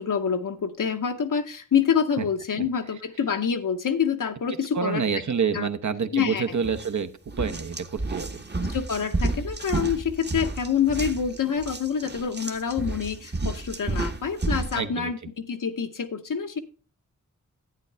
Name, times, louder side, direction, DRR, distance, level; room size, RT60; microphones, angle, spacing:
voice 1, 0.0-5.0 5.5-5.7 6.1-6.6 8.7-16.6, left 7 dB, 85° left, 6 dB, 0.9 m, -27 dB
voice 2, 4.7-7.1 7.4-8.4 14.7-15.1, right 6 dB, 65° right, 11 dB, 0.8 m, -27 dB
sound 1, 6.6-6.9 7.3-14.8, right 2 dB, 35° right, 1.0 m, -31 dB
11.0 x 9.1 x 3.3 m, 0.36 s
wide cardioid pair, 70°, 32 cm